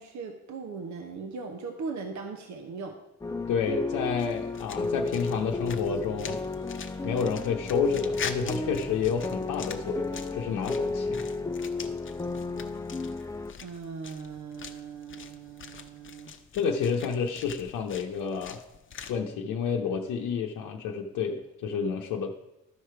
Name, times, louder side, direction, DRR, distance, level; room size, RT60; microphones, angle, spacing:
voice 1, 0.0-3.0 13.6-16.3, right 4 dB, 70° right, 5 dB, 1.0 m, -39 dB
sound 1, 3.2-13.5, left 3 dB, 10° left, 0.5 m, -33 dB
voice 2, 3.5-6.4 7.0-11.1 16.5-18.6 19.1-22.3, left 6 dB, 85° left, -1 dB, 0.8 m, -30 dB
sound 2, 4.2-19.2, left 6 dB, 40° left, 0.8 m, -44 dB
12.5 x 4.9 x 4.5 m, 0.95 s
cardioid pair, 90°, 30 cm